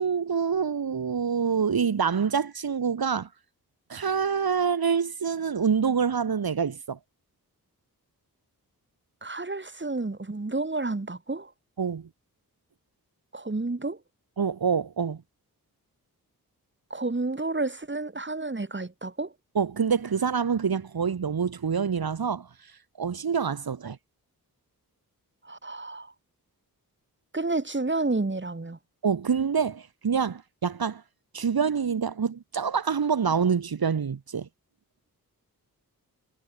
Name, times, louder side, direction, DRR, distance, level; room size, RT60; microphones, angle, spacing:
voice 1, 0.0-3.3 3.9-7.0 11.8-12.1 14.4-15.2 19.5-22.7 23.0-24.0 29.0-31.0 31.3-34.5, right 6 dB, 75° right, 3.1 m, -26 dB
voice 2, 9.2-11.5 13.3-14.0 16.9-19.3 25.4-26.1 27.3-28.8, right 3 dB, 30° right, 5.2 m, -30 dB
wide cardioid pair, 70°, 37 cm